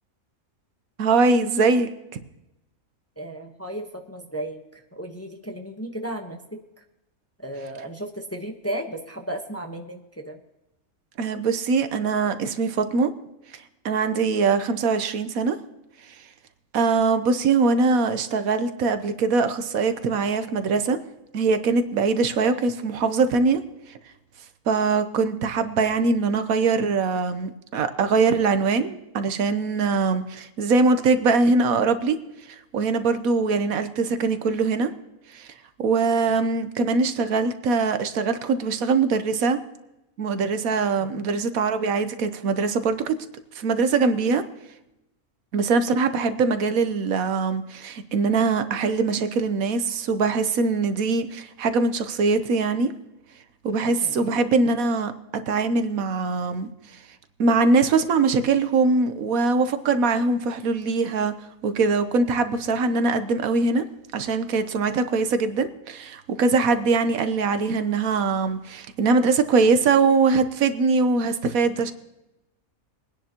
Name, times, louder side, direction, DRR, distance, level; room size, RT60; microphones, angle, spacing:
voice 1, 1.0-1.9 11.2-13.1 13.8-15.6 16.7-21.0 21.3-23.6 24.7-32.2 32.5-34.9 35.3-35.5 35.8-39.6 40.2-43.1 43.5-44.4 45.5-52.9 53.6-55.1 55.5-56.7 57.4-61.3 61.6-63.8 64.1-71.9, right 4 dB, 75° right, 10 dB, 1.3 m, -22 dB
voice 2, 3.2-6.6 7.4-10.4 41.0-41.3 54.0-54.4, right 1 dB, 10° left, 3 dB, 0.8 m, -35 dB
22.0 x 10.0 x 2.9 m, 0.94 s
omnidirectional pair, 1.5 m